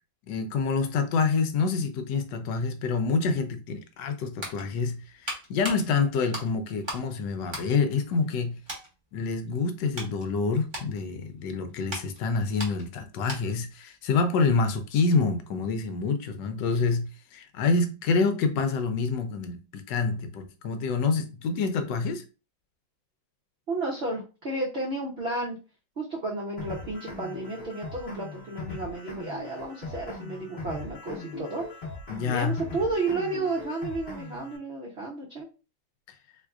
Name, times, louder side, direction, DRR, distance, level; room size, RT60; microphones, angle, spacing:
voice 1, 0.3-8.6 9.1-22.2 32.1-32.6, left 4 dB, 75° left, 1.2 m, -27 dB
sound 1, 4.0-7.1 7.4-8.4 8.7-8.9 9.5-13.7 14.0-14.2, right 1 dB, 20° right, 0.7 m, -39 dB
voice 2, 23.7-25.6 26.0-31.6 32.3-35.5, right 2 dB, 65° right, 0.6 m, -32 dB
sound 2, 26.6-34.6, left 3 dB, 40° left, 0.8 m, -40 dB
3.5 x 3.1 x 2.3 m
omnidirectional pair, 2.0 m